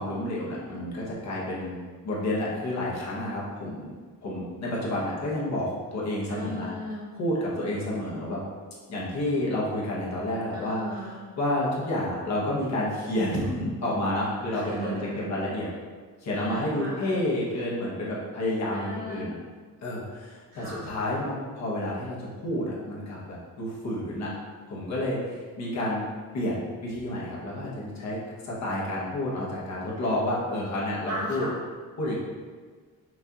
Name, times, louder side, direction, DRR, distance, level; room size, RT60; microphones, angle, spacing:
voice 1, 0.0-1.8 2.0-3.9 4.2-6.7 7.1-8.4 8.9-10.8 11.4-15.0 15.3-15.7 16.2-19.3 19.8-24.3 24.7-26.0 26.3-28.2 28.4-31.4 32.0-32.1, left 1 dB, 55° left, -6 dB, 1.1 m, -30 dB
voice 2, 6.3-7.0 10.5-11.2 14.5-15.5 16.3-17.2 18.7-19.3 20.5-20.9 31.1-31.5, equal, 45° right, -7 dB, 1.3 m, -36 dB
5.9 x 2.5 x 2.9 m, 1.5 s
cardioid pair, 180°, 34 cm